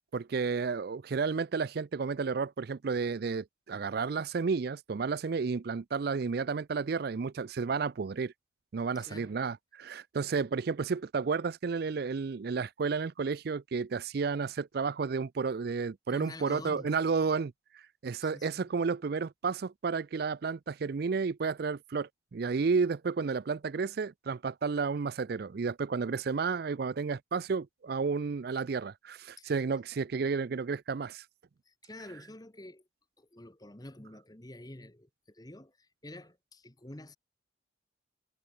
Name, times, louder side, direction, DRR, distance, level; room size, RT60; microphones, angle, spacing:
voice 1, 0.1-8.3 8.7-31.2, right 5 dB, 55° right, 0.4 m, -32 dB
voice 2, 8.9-9.3 16.1-17.0 18.2-18.7 29.4-29.5 31.7-32.9 33.2-37.2, left 1 dB, 20° left, 1.3 m, -48 dB
head